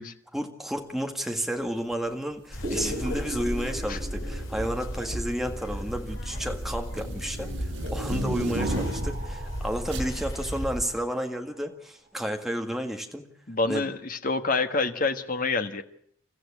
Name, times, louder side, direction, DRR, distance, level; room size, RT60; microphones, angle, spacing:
voice 1, 0.3-13.2 13.7-13.8, equal, ahead, 3 dB, 1.8 m, -32 dB
sound 1, 2.5-10.8, equal, 70° left, 3.7 m, -34 dB
sound 2, 2.6-6.9 7.8-11.6, right 2 dB, 35° right, 1.8 m, -41 dB
sound 3, 2.9-3.2 4.2-4.7 5.0-9.3 9.9-10.1, equal, 75° right, 4.3 m, -33 dB
voice 2, 13.5-15.8, left 3 dB, 40° left, 8 dB, 1.5 m, -27 dB
29.0 x 14.5 x 8.6 m, 0.66 s
head